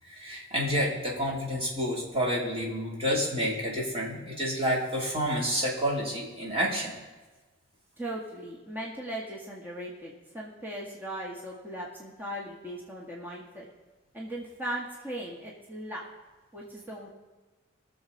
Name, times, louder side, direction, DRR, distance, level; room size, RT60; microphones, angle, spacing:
voice 1, 0.0-6.9, equal, 30° right, -4 dB, 3.1 m, -29 dB
voice 2, 8.0-13.7 14.1-16.0 16.5-17.1, right 1 dB, 10° right, -4 dB, 1.8 m, -38 dB
20.0 x 7.2 x 4.1 m, 1.2 s
head